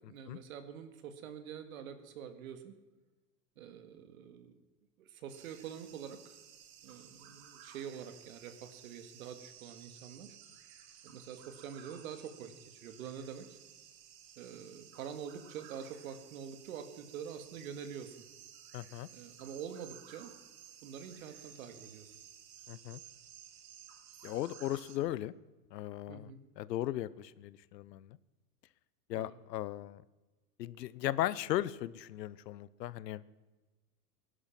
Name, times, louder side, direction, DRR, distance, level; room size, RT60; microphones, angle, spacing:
voice 1, 0.1-2.8 3.6-4.6 5.0-6.4 6.8-10.4 11.0-13.6 14.4-18.3 19.1-20.3 20.8-22.1 26.1-26.4 29.2-29.4, right 8 dB, 60° right, 9 dB, 2.0 m, -46 dB
sound 1, 5.3-25.0, right 9 dB, 25° right, 1.1 m, -56 dB
voice 2, 18.7-19.1 22.7-23.0 24.2-25.3 25.7-26.3 26.6-28.2 29.1-30.0 30.6-33.2, left 14 dB, 90° left, 18 dB, 0.9 m, -37 dB
19.5 x 11.5 x 5.9 m, 1.2 s
supercardioid pair, 175°, 48 cm